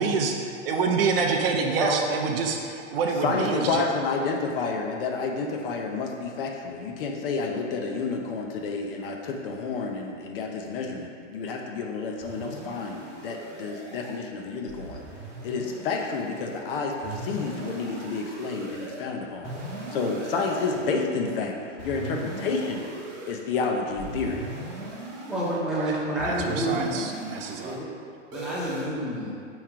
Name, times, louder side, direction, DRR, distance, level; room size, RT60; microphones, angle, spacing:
voice 1, 0.0-0.3 0.7-3.8 25.7-27.8, right 4 dB, 50° right, 2 dB, 0.5 m, -27 dB
voice 2, 1.7-2.0 25.3-26.9 27.6-27.9 28.3-29.3, right 1 dB, ahead, -9 dB, 0.7 m, -28 dB
voice 3, 3.2-15.0 15.4-19.6 19.9-21.5 21.8-22.9 23.3-24.4, left 4 dB, 50° left, 1 dB, 0.5 m, -30 dB
sound 1, 12.2-14.2 14.7-16.6 17.0-19.0 19.4-21.0 21.8-23.3 24.0-25.6 26.2-27.8 28.3-28.8, right 2 dB, 30° right, 1.0 m, -38 dB
4.5 x 3.1 x 3.6 m, 2.4 s
hypercardioid pair, 130°, 38 cm